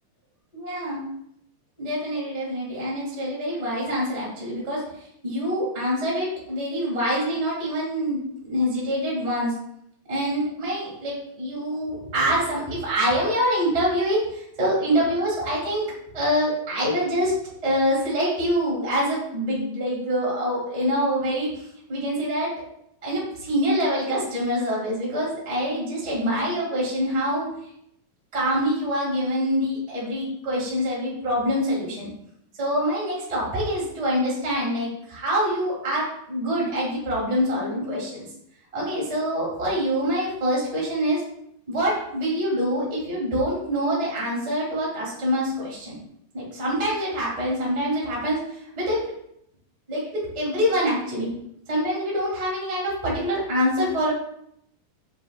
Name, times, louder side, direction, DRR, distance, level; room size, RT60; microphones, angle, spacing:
voice 1, 0.5-1.0 1.8-4.8 5.2-9.6 10.1-15.8 16.1-17.3 17.6-21.6 21.9-22.5 23.0-27.5 28.3-32.1 32.6-38.2 38.7-41.2 41.7-46.0 46.3-49.0 49.9-51.3 51.7-54.1, equal, 15° right, -6 dB, 1.4 m, -25 dB
7.1 x 5.6 x 2.4 m, 0.74 s
omnidirectional pair, 4.2 m